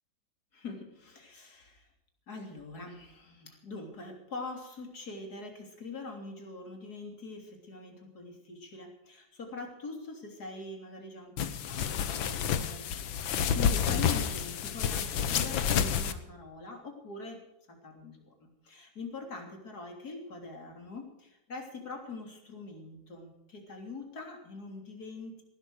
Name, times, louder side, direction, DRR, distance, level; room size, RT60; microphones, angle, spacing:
voice 1, 0.5-1.9 2.3-17.4 17.7-25.4, left 3 dB, 50° left, 2 dB, 3.8 m, -43 dB
sound 1, 11.4-16.1, left 8 dB, 80° left, 1.8 m, -29 dB
18.0 x 12.0 x 6.3 m, 0.93 s
omnidirectional pair, 2.2 m